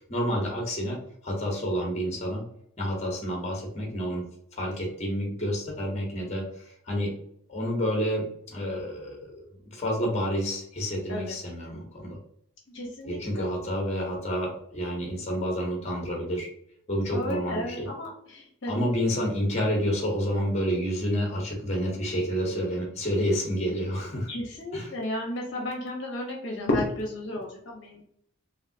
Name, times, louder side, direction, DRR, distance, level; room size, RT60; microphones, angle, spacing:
voice 1, 0.1-1.0 1.2-2.4 2.8-4.2 4.5-7.1 7.5-9.4 9.7-12.2 13.0-16.5 16.9-17.9 18.7-24.3 24.7-24.9, equal, 30° left, 0 dB, 0.9 m, -29 dB
voice 2, 12.7-13.5 17.1-18.8 24.3-28.0, left 1 dB, 60° left, -1 dB, 0.8 m, -32 dB
3.3 x 2.6 x 2.6 m, 0.69 s
head